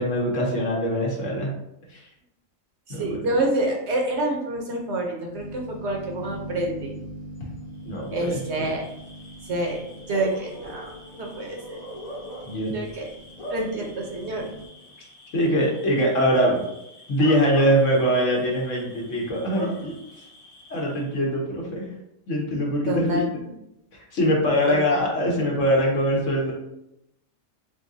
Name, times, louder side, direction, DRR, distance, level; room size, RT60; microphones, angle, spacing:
voice 1, 0.0-1.5 1.9-2.1 2.9-3.2 7.8-8.7 12.5-12.7 15.3-16.6 17.1-19.9 20.7-21.8 22.3-23.2 23.9-26.5, equal, 65° left, -2 dB, 1.4 m, -23 dB
voice 2, 2.9-6.9 8.1-8.9 9.5-9.8 10.1-11.8 12.7-13.1 13.5-14.4 22.9-23.3 24.7-25.0, right 1 dB, 60° right, 1 dB, 1.0 m, -27 dB
sound 1, 5.3-14.7, equal, 45° left, 1.1 m, -42 dB
Bark / Cricket, 7.9-21.2, left 1 dB, 85° left, 1.4 m, -42 dB
3.8 x 3.7 x 2.7 m, 0.83 s
omnidirectional pair, 1.4 m